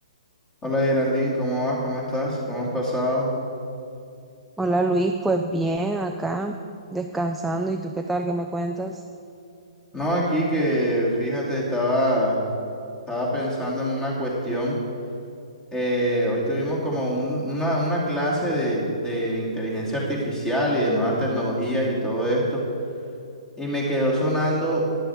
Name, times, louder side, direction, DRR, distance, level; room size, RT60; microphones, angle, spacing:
voice 1, 0.6-3.3 9.9-12.4 13.1-14.8 15.7-22.6 23.6-24.8, equal, 15° left, -4 dB, 2.6 m, -24 dB
voice 2, 4.6-6.6 6.9-9.0, right 2 dB, 5° right, 4 dB, 0.4 m, -25 dB
12.5 x 10.5 x 3.5 m, 2.6 s
figure-of-eight pair, 130°, 3 cm